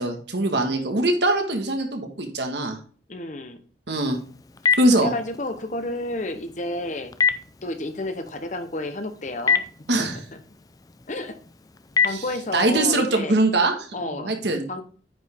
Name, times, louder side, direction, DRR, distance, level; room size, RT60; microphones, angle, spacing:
voice 1, 0.0-2.8 3.9-4.2 4.8-5.1 9.9-10.2 12.1-12.2 12.5-14.7, right 2 dB, 70° right, 4 dB, 1.6 m, -22 dB
voice 2, 3.1-3.6 4.7-7.1 7.6-9.6 10.0-10.1 11.1-11.4 12.0-13.4 13.9-14.3 14.7-14.8, left 2 dB, 45° left, 8 dB, 0.9 m, -31 dB
Telephone, 3.9-12.8, left 6 dB, 20° left, 0.4 m, -29 dB
9.1 x 5.3 x 3.5 m, 0.41 s
head